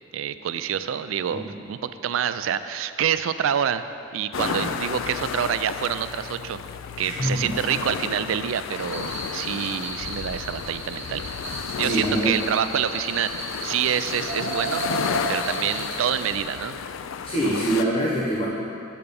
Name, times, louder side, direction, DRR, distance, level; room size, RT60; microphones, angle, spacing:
voice 1, 0.1-3.8 4.1-6.6 7.0-11.2 11.8-14.8 15.3-16.8, right 9 dB, 75° right, 12 dB, 0.3 m, -27 dB
sound 1, 4.3-17.8, left 7 dB, 70° left, 0.3 m, -33 dB
voice 2, 4.4-4.7 7.0-7.5 11.7-12.3 17.2-18.5, right 1 dB, 30° left, -6 dB, 0.9 m, -25 dB
sound 2, 8.8-16.2, right 2 dB, 35° right, 1.6 m, -34 dB
8.5 x 6.9 x 5.3 m, 2.7 s
head